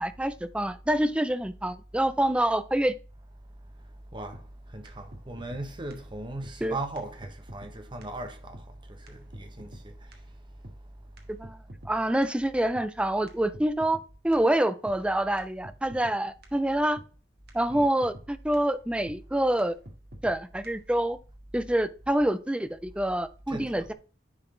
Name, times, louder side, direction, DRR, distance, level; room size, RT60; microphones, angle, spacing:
voice 1, 0.0-2.9 6.6-6.8 11.4-11.6 11.9-14.0 14.2-17.0 17.5-19.8 20.2-21.2 21.5-23.9, right 1 dB, 5° right, 0.4 m, -26 dB
sound 1, 4.3-4.4 4.8-4.9 5.1-5.6 5.9-6.0 6.4-6.5 7.0-7.1 7.2-7.7 8.0-8.1 8.5-8.7 9.1-9.2 9.3-9.8 10.1-10.2 10.6-10.8 11.2-11.9 12.2-12.3 12.7-12.9 13.3-13.4 13.5-14.0 14.3-14.4 14.9-15.0 15.4-15.5 15.6-16.2 16.4-16.5 17.0-17.1 17.5-17.6 17.7-18.3 18.5-18.6 19.1-19.2 19.6-19.7 19.9-20.4 20.6-20.7, right 1 dB, 65° right, 1.7 m, -45 dB
voice 2, 4.7-8.6 8.9-9.9 17.7-17.9 23.5-23.9, right 2 dB, 25° right, 1.1 m, -38 dB
9.9 x 4.1 x 3.8 m
head